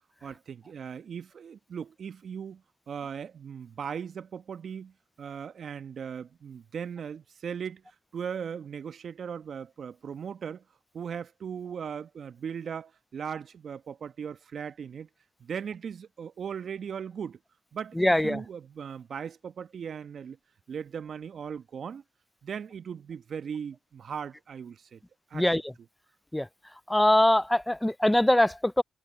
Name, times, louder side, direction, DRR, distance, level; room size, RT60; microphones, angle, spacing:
voice 1, 0.2-2.6 2.9-4.9 5.2-7.8 8.1-10.6 10.9-15.1 15.4-17.4 17.7-20.4 20.7-22.0 22.4-25.0 25.3-25.5, right 7 dB, 60° right, 1.3 m, -38 dB
voice 2, 18.0-18.4 25.3-25.6 26.3-26.5 26.9-28.8, left 1 dB, 10° left, 0.3 m, -22 dB
hypercardioid pair, 45°, 0 cm